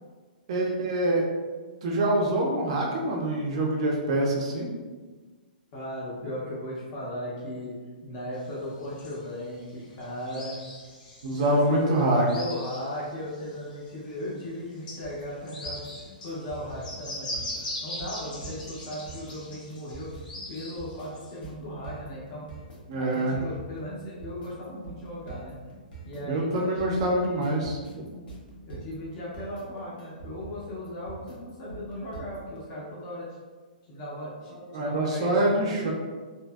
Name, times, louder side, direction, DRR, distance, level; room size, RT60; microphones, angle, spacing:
voice 1, 0.5-1.3 1.8-4.7 11.2-12.3 22.9-23.4 26.2-27.8 34.7-35.9, right 1 dB, 35° right, -1 dB, 0.4 m, -25 dB
voice 2, 5.7-7.7 8.0-10.5 11.3-15.8 16.2-17.4 17.8-20.1 20.5-22.5 23.0-25.6 26.0-27.7 28.7-33.3 33.8-35.9, left 1 dB, 25° left, -6 dB, 0.4 m, -37 dB
sound 1, 8.4-13.9 14.2-14.3 14.7-21.3, left 1 dB, 60° left, 0.8 m, -40 dB
sound 2, 15.0-32.6, right 4 dB, 90° left, 1.0 m, -44 dB
2.7 x 2.4 x 2.2 m, 1.4 s
hypercardioid pair, 175°, 5 cm